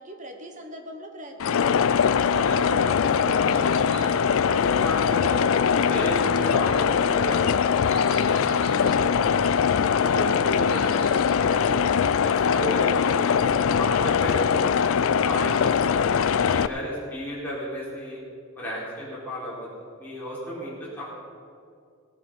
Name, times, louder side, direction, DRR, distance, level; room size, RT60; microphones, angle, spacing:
voice 1, 0.0-2.1 10.0-10.5 16.7-17.2 20.5-21.0, right 1 dB, 35° right, 4 dB, 1.3 m, -44 dB
sound 1, 1.4-16.7, left 7 dB, 65° left, 0.4 m, -22 dB
voice 2, 2.3-5.4 5.9-7.9 8.2-9.4 10.0-10.3 10.5-11.8 12.2-16.0 16.4-18.2 18.5-21.0, equal, 10° left, -8 dB, 4.1 m, -34 dB
sound 2, 2.8-4.3 6.3-9.0 10.1-11.3, right 4 dB, 90° right, 2.6 m, -46 dB
17.5 x 8.4 x 5.6 m, 2.3 s
head